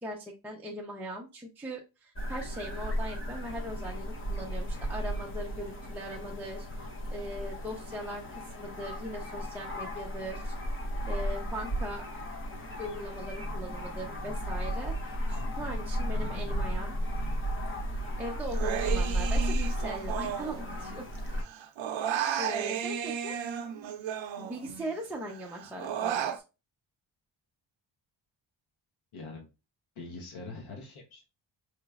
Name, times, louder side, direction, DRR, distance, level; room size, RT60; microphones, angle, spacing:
voice 1, 0.0-10.5 11.1-12.0 12.8-16.9 18.2-21.0 22.4-23.4 24.4-26.4, equal, 5° right, -3 dB, 0.5 m, -40 dB
sound 1, 2.2-21.4, equal, 25° left, 0.8 m, -34 dB
Human voice, 18.5-21.2 21.4-24.9 25.3-26.4, right 8 dB, 70° right, 0.6 m, -34 dB
voice 2, 29.1-29.5 30.0-31.3, left 3 dB, 80° left, 1 dB, 1.1 m, -43 dB
4.9 x 3.0 x 2.3 m, 0.28 s
wide cardioid pair, 170°, 47 cm